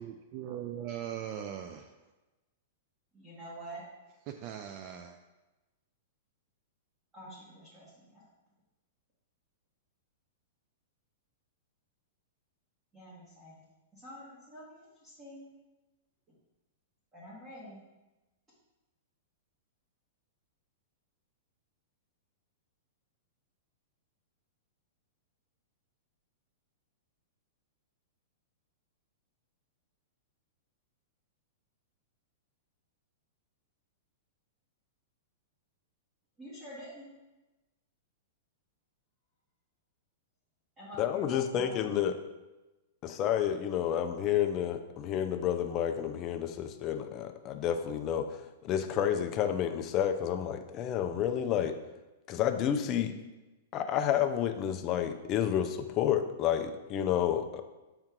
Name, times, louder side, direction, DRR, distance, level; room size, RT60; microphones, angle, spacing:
voice 1, 0.0-1.9 4.3-5.2, right 10 dB, 35° right, 6 dB, 0.3 m, -40 dB
voice 2, 3.1-3.8 7.1-8.2 12.9-13.6 13.9-15.5 17.1-17.8 36.4-37.0 40.8-41.2 41.5-41.9, equal, 15° right, -8 dB, 1.6 m, -47 dB
voice 3, 41.0-42.2 43.0-51.7 52.3-53.1 53.7-57.6, left 9 dB, 25° left, 7 dB, 0.5 m, -30 dB
7.6 x 4.5 x 3.7 m, 1.1 s
supercardioid pair, 160°, 0 cm